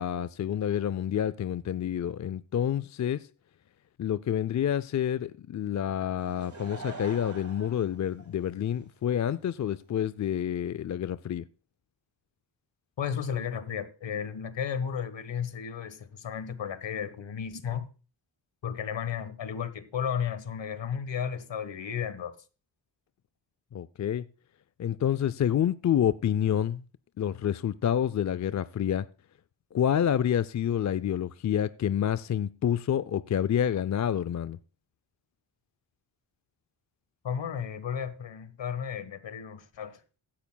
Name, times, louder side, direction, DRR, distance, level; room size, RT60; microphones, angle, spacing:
voice 1, 0.0-3.3 4.0-11.5 23.7-24.2 24.8-26.8 27.2-29.1 29.7-34.6, left 9 dB, 40° left, 0.4 m, -28 dB
Laughter / Crowd, 6.2-8.8 9.5-9.6, right 3 dB, 35° right, 1.9 m, -44 dB
voice 2, 13.0-17.9 18.6-22.3 37.2-40.0, left 7 dB, 60° left, 1.3 m, -34 dB
16.0 x 10.5 x 2.2 m
cardioid pair, 70°, 49 cm